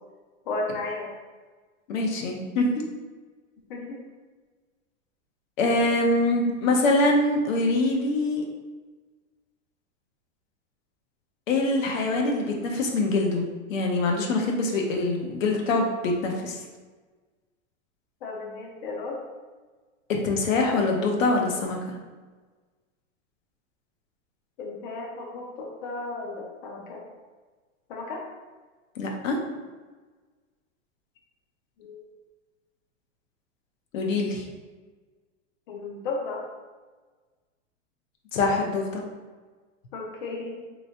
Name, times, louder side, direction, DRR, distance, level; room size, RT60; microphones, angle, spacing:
voice 1, 0.5-1.1 3.7-4.0 18.2-19.2 24.6-27.0 27.9-28.2 31.8-32.0 35.7-36.4 39.9-40.6, left 3 dB, 45° left, -1 dB, 0.5 m, -34 dB
voice 2, 1.9-2.7 5.6-8.4 11.5-13.4 13.7-16.6 20.1-21.8 29.0-29.4 33.9-34.4 38.3-39.0, left 2 dB, 80° left, 1 dB, 0.8 m, -24 dB
3.2 x 3.0 x 2.7 m, 1.3 s
supercardioid pair, 165°, 38 cm